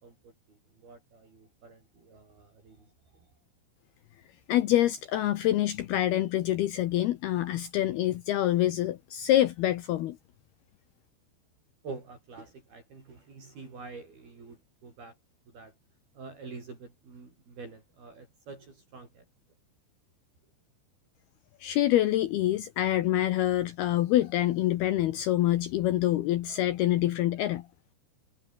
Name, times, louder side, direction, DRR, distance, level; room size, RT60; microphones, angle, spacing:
voice 1, 0.0-3.3 11.8-15.2 15.5-15.7 16.1-19.3, right 4 dB, 45° right, 8.1 m, -47 dB
voice 2, 4.5-10.2 21.6-27.7, left 14 dB, 80° left, 2.2 m, -26 dB
omnidirectional pair, 5.9 m